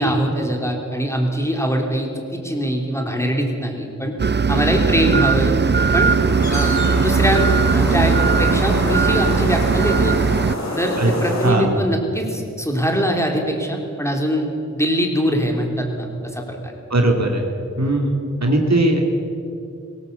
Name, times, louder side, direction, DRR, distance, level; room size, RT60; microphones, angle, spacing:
voice 1, 0.0-4.1 4.5-5.6 5.9-6.2 6.5-6.7 7.0-10.2 10.8-14.5 14.7-16.1 16.3-16.6, equal, 10° left, 1 dB, 3.5 m, -22 dB
sound 1, 4.2-10.6, right 5 dB, 35° right, 0.5 m, -18 dB
sound 2, 5.3-11.5, left 1 dB, 65° left, 3.9 m, -27 dB
voice 2, 11.4-11.8 16.9-17.5 17.8-18.1 18.4-19.0, right 1 dB, 65° right, 1 dB, 2.8 m, -18 dB
19.0 x 17.0 x 8.3 m, 2.6 s
wide cardioid pair, 60°, 30 cm